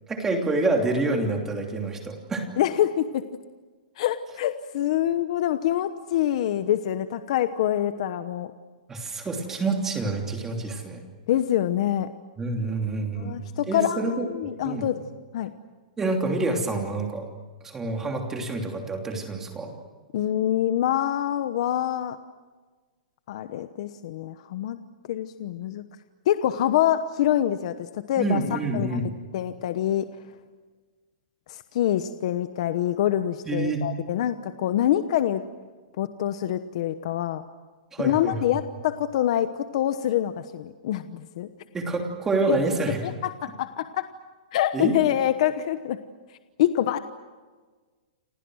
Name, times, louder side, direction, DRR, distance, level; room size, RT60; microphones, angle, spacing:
voice 1, 0.1-2.4 8.9-11.0 12.4-13.4 13.7-14.9 16.0-17.2 17.6-19.7 28.2-29.2 33.5-33.8 37.9-38.5 41.7-43.1 44.7-44.9, right 2 dB, 10° right, 2 dB, 3.0 m, -27 dB
voice 2, 2.6-3.3 4.0-8.5 11.3-12.1 13.1-15.0 15.3-15.5 20.1-22.2 23.3-24.8 25.1-25.8 26.3-29.0 29.3-30.1 31.5-35.4 36.0-37.4 38.0-41.5 43.0-44.1 44.5-46.0 46.6-47.0, left 11 dB, 45° left, 10 dB, 1.0 m, -25 dB
29.5 x 26.5 x 6.4 m, 1.4 s
hypercardioid pair, 175°, 5 cm